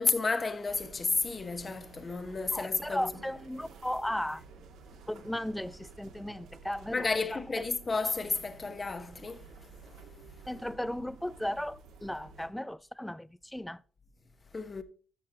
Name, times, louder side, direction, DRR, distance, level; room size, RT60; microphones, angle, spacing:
voice 1, 0.0-3.1 6.9-9.5 9.8-10.1 14.5-14.8, left 4 dB, 30° left, 1.0 m, -32 dB
sound 1, 0.7-12.5, right 4 dB, 85° right, 1.9 m, -52 dB
voice 2, 2.5-4.4 5.1-7.6 10.5-13.8, left 1 dB, 5° left, 0.3 m, -36 dB
13.5 x 6.5 x 2.8 m
cardioid pair, 90°, 0 cm